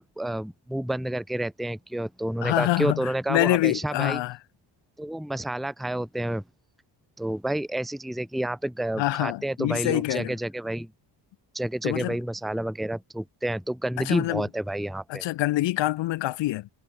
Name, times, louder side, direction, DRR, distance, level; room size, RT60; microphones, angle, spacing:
voice 1, 0.0-4.2 5.0-6.4 7.2-10.9 11.5-15.2, right 1 dB, ahead, 0.8 m, -30 dB
voice 2, 2.4-4.4 9.0-10.3 11.8-12.2 14.0-14.4 15.1-16.7, left 16 dB, 70° left, 0.7 m, -26 dB
cardioid pair, 95°, 46 cm